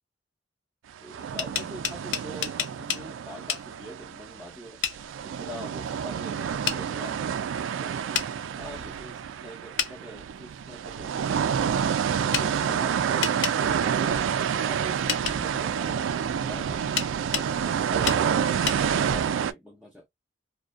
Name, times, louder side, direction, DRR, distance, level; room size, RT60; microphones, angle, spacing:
voice 1, 1.0-4.8 5.2-8.1 8.6-14.3 14.7-17.1 17.3-20.1, equal, ahead, 0.5 m, -44 dB
sound 1, 1.1-4.6 4.9-19.5, right 7 dB, 85° right, 0.3 m, -28 dB
sound 2, 1.2-3.0 3.5-3.6 4.8-5.0 6.7-6.8 8.1-8.3 9.8-9.9 12.3-12.5 13.2-13.6 15.1-15.4 17.0-17.5 18.1-18.2 18.7-18.8, left 8 dB, 70° left, 0.5 m, -28 dB
2.4 x 2.2 x 2.4 m
head